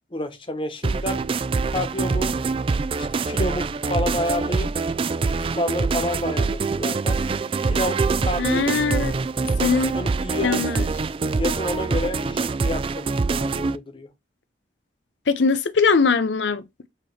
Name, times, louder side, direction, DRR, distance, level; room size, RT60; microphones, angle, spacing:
voice 1, 0.1-1.2 1.7-2.3 3.0-4.7 5.3-7.2 7.6-8.6 9.6-10.6 11.4-14.1, left 1 dB, 30° left, 1.0 m, -29 dB
sound 1, 0.8-13.8, right 4 dB, 30° right, 0.3 m, -24 dB
voice 2, 8.4-9.1 9.6-9.9 10.4-10.8 15.3-16.9, left 4 dB, 85° left, 0.7 m, -21 dB
7.9 x 3.1 x 4.2 m
head